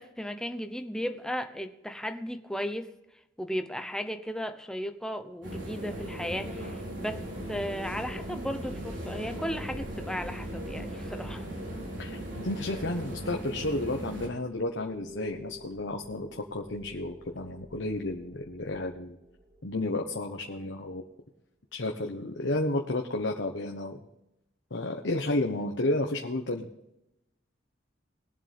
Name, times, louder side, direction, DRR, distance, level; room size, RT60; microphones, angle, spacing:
voice 1, 0.0-2.9 3.4-11.5 25.6-25.7, equal, 5° left, 7 dB, 0.9 m, -35 dB
sound 1, 5.4-14.3, right 1 dB, 85° right, 4.2 m, -38 dB
sound 2, 6.4-20.8, equal, 40° right, 2.2 m, -52 dB
voice 2, 12.4-19.2 19.6-21.1 21.7-24.0 24.7-26.7, left 2 dB, 80° left, 2 dB, 1.2 m, -32 dB
22.0 x 7.5 x 3.6 m, 0.90 s
head